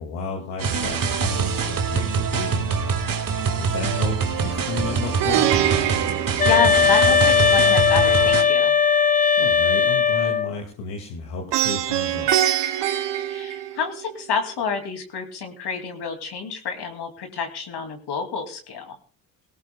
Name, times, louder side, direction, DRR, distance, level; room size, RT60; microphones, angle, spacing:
voice 1, 0.0-3.0 3.2-5.5 9.0-9.1 9.4-12.3, left 4 dB, 85° left, 1 dB, 2.2 m, -33 dB
sound 1, 0.6-8.4, right 5 dB, 45° right, 2.0 m, -24 dB
Plucked string instrument, 5.2-7.4 11.5-14.1, right 11 dB, 60° right, 1.3 m, -24 dB
voice 2, 6.4-8.8 13.3-18.9, left 5 dB, 55° left, 5 dB, 2.5 m, -28 dB
sound 2, 6.4-10.5, left 6 dB, 20° left, 0.5 m, -18 dB
18.5 x 17.5 x 2.2 m, 0.40 s
supercardioid pair, 65°, 47 cm